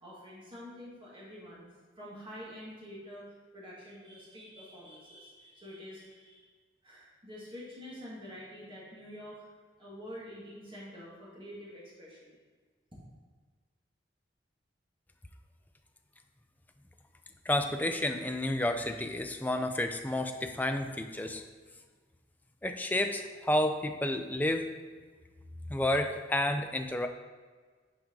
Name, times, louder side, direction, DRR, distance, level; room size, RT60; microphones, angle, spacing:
voice 1, 0.0-1.7 2.0-3.3 3.5-6.5 6.8-9.5 9.8-12.4, equal, 30° right, -7 dB, 2.1 m, -47 dB
voice 2, 17.5-21.4 22.6-24.7 25.7-27.1, left 1 dB, 10° left, 5 dB, 0.5 m, -30 dB
8.7 x 5.1 x 3.9 m, 1.5 s
head